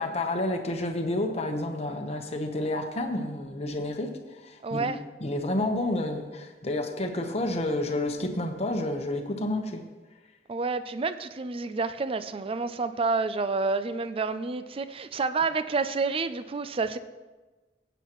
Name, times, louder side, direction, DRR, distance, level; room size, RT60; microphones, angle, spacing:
voice 1, 0.0-4.9 5.2-9.8, left 1 dB, 40° left, 5 dB, 1.0 m, -30 dB
voice 2, 4.6-5.0 10.5-17.0, right 4 dB, 30° right, 12 dB, 0.4 m, -29 dB
17.0 x 8.1 x 3.1 m, 1.2 s
head